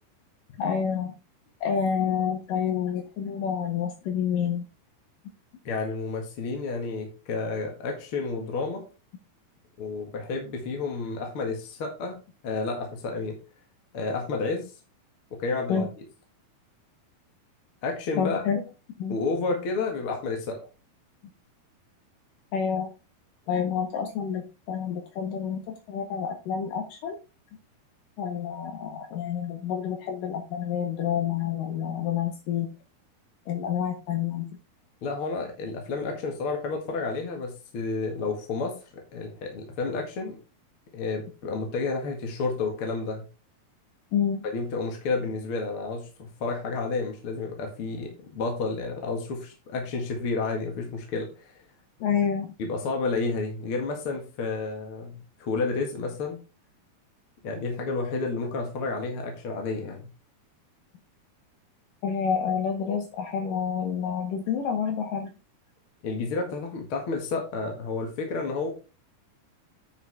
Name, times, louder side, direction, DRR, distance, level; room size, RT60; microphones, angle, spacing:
voice 1, 0.6-1.1 1.6-4.6 15.7-15.9 18.1-18.6 19.0-19.2 22.5-22.9 23.5-27.2 28.2-32.7 33.5-34.6 44.1-44.4 52.0-52.5 62.0-65.3, left 7 dB, 70° left, 5 dB, 2.3 m, -28 dB
voice 2, 5.6-8.8 9.8-12.2 12.4-13.3 13.9-14.7 15.3-15.9 17.8-18.4 19.1-20.6 35.0-40.4 40.9-43.3 44.5-51.5 52.6-56.4 57.4-60.1 66.0-68.7, left 3 dB, 45° left, 2 dB, 1.9 m, -30 dB
9.6 x 6.0 x 3.5 m, 0.31 s
omnidirectional pair, 4.5 m